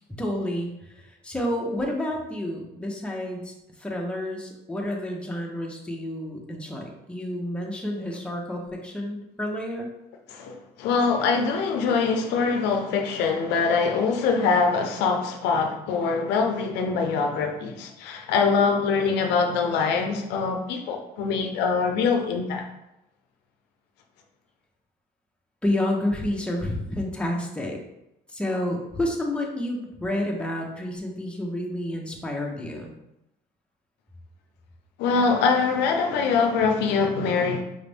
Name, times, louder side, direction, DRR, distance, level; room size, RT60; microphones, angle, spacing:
voice 1, 0.1-0.7 1.2-3.5 3.8-9.9 25.6-27.8 28.3-32.9, left 1 dB, 5° left, 0.8 m, -29 dB
voice 2, 10.3-22.7 35.0-37.6, left 5 dB, 90° left, 0.6 m, -23 dB
5.2 x 2.4 x 3.4 m
cardioid pair, 110°, 17 cm